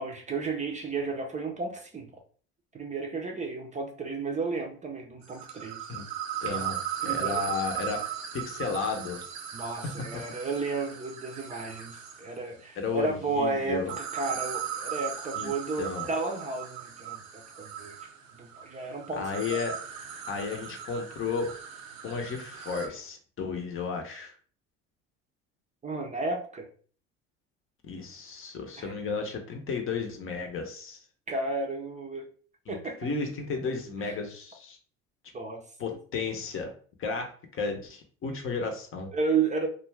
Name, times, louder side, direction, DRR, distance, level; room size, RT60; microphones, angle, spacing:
voice 1, 0.0-2.1 2.7-5.8 6.5-6.7 7.0-7.4 9.5-17.9 18.4-19.3 25.8-26.7 28.8-28.9 31.3-32.3 32.7-33.0 34.1-34.2 35.3-35.6 39.1-39.7, right 4 dB, 25° right, 0.5 m, -33 dB
sound 1, 5.2-12.4 13.8-22.9, right 9 dB, 90° right, 0.6 m, -37 dB
voice 2, 6.4-8.1 8.3-9.2 9.8-9.9 12.8-13.9 15.3-15.5 15.8-16.1 19.2-19.8 20.3-21.5 22.0-24.3 27.8-31.0 32.7-32.8 33.0-34.8 35.8-36.7 37.0-39.1, left 5 dB, 45° left, 0.7 m, -33 dB
2.5 x 2.2 x 3.2 m
supercardioid pair, 85°, 31 cm